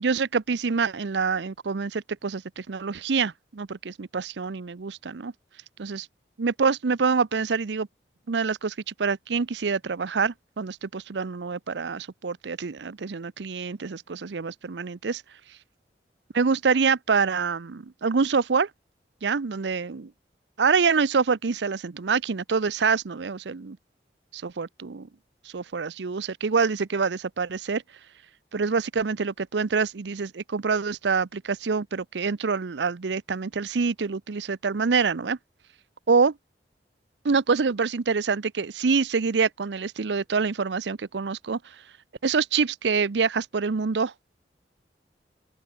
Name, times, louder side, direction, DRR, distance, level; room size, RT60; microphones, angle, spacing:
voice 1, 0.0-5.3 5.8-6.1 6.4-7.9 8.3-15.2 16.3-18.7 19.2-20.1 20.6-23.8 24.3-25.1 25.5-27.8 28.5-35.4 36.1-36.3 37.2-41.8 42.2-44.1, right 5 dB, 85° right, 0.6 m, -26 dB
open air
head